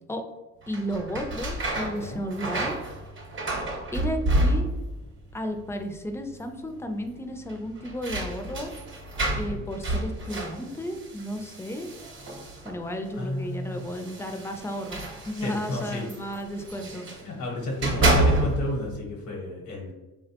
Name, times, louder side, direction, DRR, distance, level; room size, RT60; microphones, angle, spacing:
sound 1, 0.6-5.0 5.3-6.0 6.3-6.4 7.5-12.9 13.8-17.3 17.6-18.8, right 1 dB, 40° right, 0.8 m, -29 dB
voice 1, 0.7-2.8 3.9-4.7 5.3-8.7 9.3-11.9 12.6-17.1, equal, 10° left, 5 dB, 0.3 m, -33 dB
voice 2, 13.2-13.8 15.4-16.1 17.2-19.9, left 2 dB, 85° left, -2 dB, 0.8 m, -32 dB
3.5 x 2.1 x 2.8 m, 1.1 s
cardioid pair, 90°, 30 cm